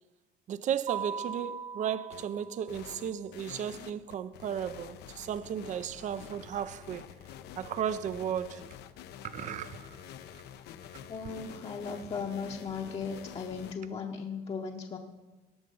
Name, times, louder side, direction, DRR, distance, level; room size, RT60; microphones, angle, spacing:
voice 1, 0.5-7.1 7.6-8.7 9.2-10.0 10.3-10.4, right 9 dB, 45° right, 0.5 m, -35 dB
Mallet percussion, 0.9-2.9, right 7 dB, 75° right, 2.2 m, -39 dB
sound 1, 2.1-2.3 2.7-13.7, left 10 dB, 75° left, 0.7 m, -48 dB
voice 2, 11.1-15.0, left 5 dB, 35° left, 0.8 m, -37 dB
18.0 x 6.3 x 5.4 m
cardioid pair, 110°, 17 cm